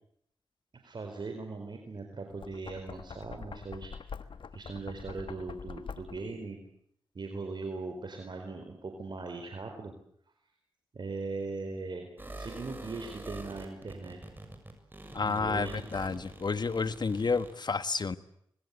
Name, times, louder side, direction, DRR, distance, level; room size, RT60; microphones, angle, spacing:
voice 1, 0.8-3.9 4.5-6.6 7.1-9.9 10.9-12.1 12.3-14.2 15.2-15.8, right 3 dB, 60° right, 4 dB, 4.3 m, -39 dB
Knock, 2.3-6.4, left 5 dB, 70° left, 1.3 m, -45 dB
sound 1, 12.2-17.5, right 2 dB, 20° right, 7.1 m, -45 dB
voice 2, 15.1-18.2, left 4 dB, 55° left, 13 dB, 1.5 m, -30 dB
25.5 x 21.5 x 8.4 m, 0.70 s
cardioid pair, 40°, 9 cm